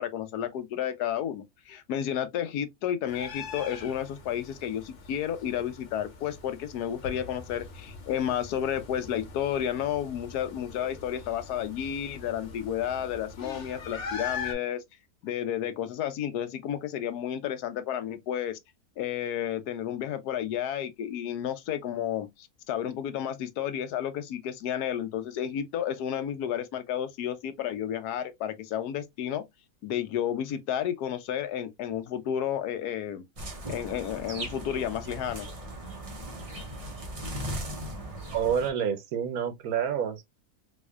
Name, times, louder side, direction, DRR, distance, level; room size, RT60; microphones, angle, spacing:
voice 1, 0.0-14.8 15.2-18.6 19.0-29.4 29.8-33.3 33.7-35.5, left 10 dB, 80° left, 1.2 m, -31 dB
sound 1, 3.1-14.5, left 5 dB, 55° left, 1.1 m, -42 dB
sound 2, 33.4-38.7, right 1 dB, 35° right, 0.6 m, -38 dB
voice 2, 38.3-40.2, right 8 dB, 70° right, 1.2 m, -28 dB
3.5 x 3.2 x 2.3 m
omnidirectional pair, 1.6 m